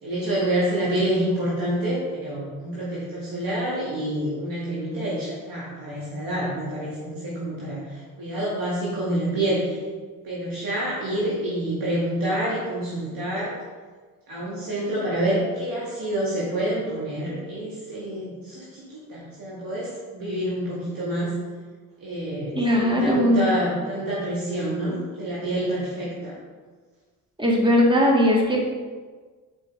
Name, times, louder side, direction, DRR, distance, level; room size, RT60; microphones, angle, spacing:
voice 1, 0.0-9.8 10.2-13.6 14.3-21.4 22.0-26.4, right 1 dB, 60° right, -7 dB, 2.0 m, -27 dB
voice 2, 22.6-23.5 27.4-28.7, equal, 15° right, -2 dB, 1.9 m, -19 dB
5.5 x 4.4 x 5.1 m, 1.4 s
supercardioid pair, 55°, 38 cm